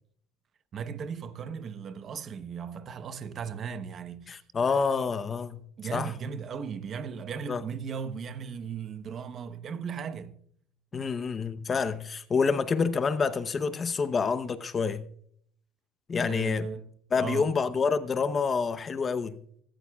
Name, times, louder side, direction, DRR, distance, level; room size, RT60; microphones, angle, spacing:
voice 1, 0.7-4.3 4.7-4.8 5.8-10.4 11.0-11.1 16.2-16.9 17.2-17.5, right 6 dB, 35° right, 0.9 m, -37 dB
voice 2, 4.3-5.6 5.9-6.1 7.5-7.6 10.9-15.1 16.1-16.7 17.1-19.4, left 5 dB, 25° left, 0.8 m, -27 dB
25.0 x 13.0 x 2.3 m
cardioid pair, 130°, 0 cm